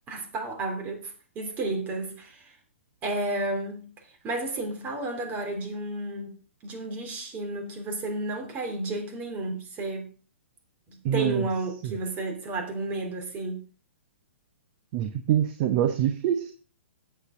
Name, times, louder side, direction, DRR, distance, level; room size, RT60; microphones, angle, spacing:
voice 1, 0.1-2.5 3.0-3.9 4.2-6.3 6.6-10.1 10.9-13.6, right 2 dB, 25° right, 3.4 m, -32 dB
voice 2, 11.0-11.4 14.9-16.5, right 10 dB, 40° right, 1.0 m, -25 dB
13.0 x 8.4 x 3.8 m
figure-of-eight pair, 120°, 7 cm